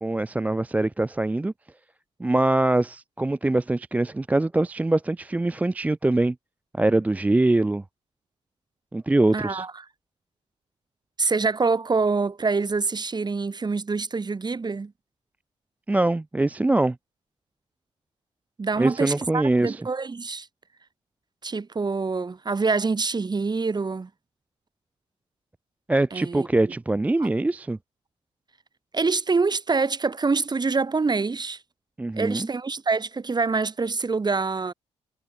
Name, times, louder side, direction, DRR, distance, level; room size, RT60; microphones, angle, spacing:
voice 1, 0.0-1.5 2.2-6.4 6.7-7.8 8.9-9.7 15.9-17.0 18.8-19.9 25.9-27.8 32.0-32.5, right 2 dB, 10° right, 0.3 m, -23 dB
voice 2, 9.3-9.7 11.2-14.9 18.6-20.5 21.4-24.1 26.1-26.7 27.2-27.3 28.9-31.6 32.2-34.7, right 4 dB, 30° right, 1.4 m, -25 dB
supercardioid pair, 50°, 13 cm